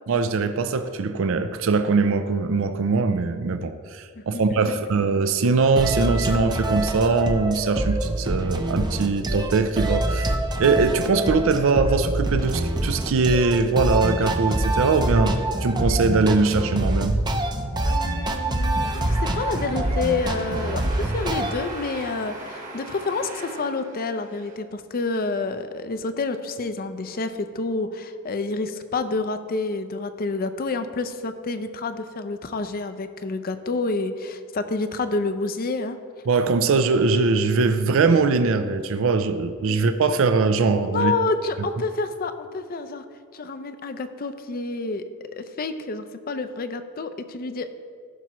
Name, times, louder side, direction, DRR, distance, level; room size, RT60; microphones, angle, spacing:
voice 1, 0.1-10.3 10.6-17.2 36.3-41.1, right 4 dB, 65° right, 9 dB, 0.4 m, -21 dB
voice 2, 4.2-4.8 17.8-36.0 40.9-43.0 43.3-45.0 45.3-47.7, left 3 dB, 45° left, 10 dB, 0.5 m, -28 dB
sound 1, 5.8-21.5, right 1 dB, 20° right, 0.6 m, -25 dB
sound 2, 18.8-24.5, right 2 dB, 40° right, 1.4 m, -38 dB
15.0 x 5.9 x 3.0 m, 2.1 s
head